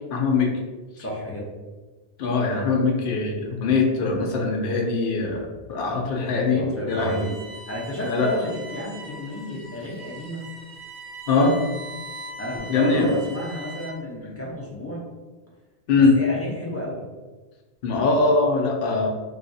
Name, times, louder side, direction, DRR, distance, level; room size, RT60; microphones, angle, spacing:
voice 1, 0.1-0.5 2.2-7.3 8.1-8.3 11.3-11.6 12.7-13.1 15.9-16.2 17.8-19.1, left 3 dB, 60° left, 1 dB, 0.7 m, -22 dB
voice 2, 1.0-1.5 6.5-7.2 7.7-10.4 12.4-15.0 15.9-17.0, equal, 20° left, -5 dB, 0.5 m, -31 dB
Bowed string instrument, 6.9-14.1, right 1 dB, 65° right, 1.0 m, -41 dB
3.4 x 2.3 x 2.6 m, 1.3 s
omnidirectional pair, 1.2 m